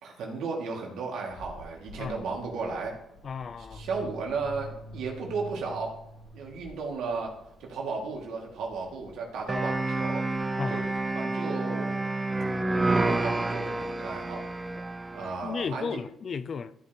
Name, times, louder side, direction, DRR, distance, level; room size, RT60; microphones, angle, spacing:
voice 1, 0.0-2.9 3.6-6.0 6.3-7.3 7.6-10.2 10.7-10.8 11.1-12.1 12.9-14.4 15.1-16.0, right 4 dB, 80° right, 2.3 m, -34 dB
sound 1, 1.3-11.2, equal, 85° left, 3.5 m, -48 dB
voice 2, 3.2-3.8 10.6-10.9 15.4-16.7, left 6 dB, 50° left, 0.5 m, -34 dB
sound 2, 9.5-15.4, right 2 dB, 20° right, 0.5 m, -29 dB
14.0 x 5.6 x 3.0 m
cardioid pair, 90°, 0 cm